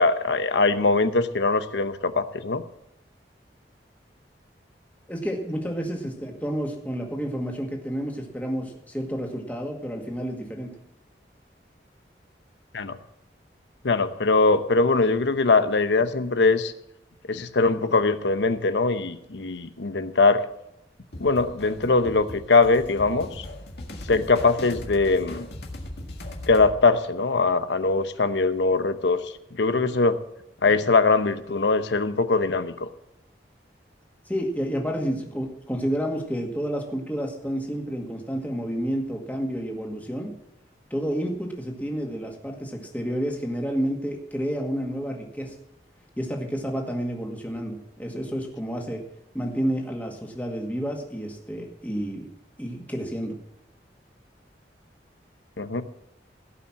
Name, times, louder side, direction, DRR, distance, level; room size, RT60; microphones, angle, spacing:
voice 1, 0.0-2.6 12.7-13.0 13.8-16.7 17.3-20.5 21.2-23.4 24.1-25.5 26.5-29.2 29.5-30.2 30.6-32.9 55.6-55.8, left 3 dB, 85° left, 10 dB, 0.9 m, -22 dB
voice 2, 5.1-10.7 34.3-40.3 40.9-45.5 46.2-49.0 49.3-52.3 52.6-53.4, equal, 10° left, 1 dB, 1.9 m, -30 dB
sound 1, 21.1-26.7, left 1 dB, 65° left, 1.9 m, -39 dB
17.0 x 5.8 x 7.4 m, 0.81 s
head